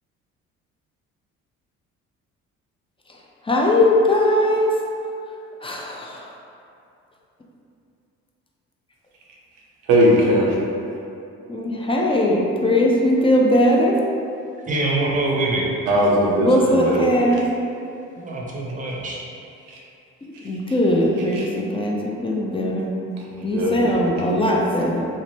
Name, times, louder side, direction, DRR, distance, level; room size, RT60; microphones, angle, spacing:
voice 1, 3.5-4.8 5.6-6.3 11.5-14.0 16.4-17.5 20.4-22.9 23.4-25.1, left 1 dB, 15° left, -2 dB, 0.4 m, -20 dB
voice 2, 9.9-10.5 15.9-17.1 21.3-21.4 23.4-24.4, equal, 85° right, -3 dB, 0.7 m, -19 dB
voice 3, 14.7-15.6 18.2-19.2, right 2 dB, 25° right, -3 dB, 0.6 m, -24 dB
2.8 x 2.1 x 3.2 m, 2.6 s
supercardioid pair, 65°, 34 cm